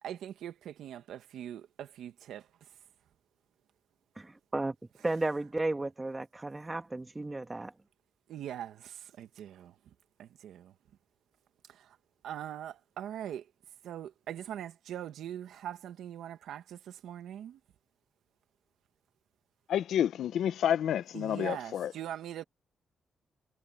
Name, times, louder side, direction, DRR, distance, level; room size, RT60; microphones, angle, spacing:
voice 1, 0.0-2.7 8.3-9.8 10.2-10.7 11.7-12.0 12.2-13.5 13.8-17.6 21.1-22.4, right 10 dB, 85° right, 1.7 m, -42 dB
voice 2, 4.1-4.7 5.0-7.7, right 2 dB, 20° right, 1.7 m, -34 dB
voice 3, 19.7-21.9, left 10 dB, 80° left, 0.7 m, -29 dB
cardioid pair, 65°, 0 cm